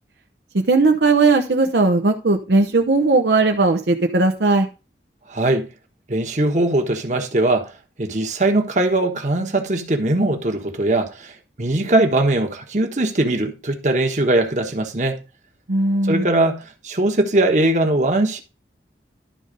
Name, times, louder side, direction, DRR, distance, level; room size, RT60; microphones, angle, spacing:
voice 1, 0.5-4.7 15.7-16.3, right 3 dB, 70° right, 0.8 m, -17 dB
voice 2, 5.3-5.7 6.1-7.7 8.0-15.2 16.0-18.4, right 2 dB, 45° right, 1.3 m, -20 dB
11.5 x 4.0 x 5.2 m
head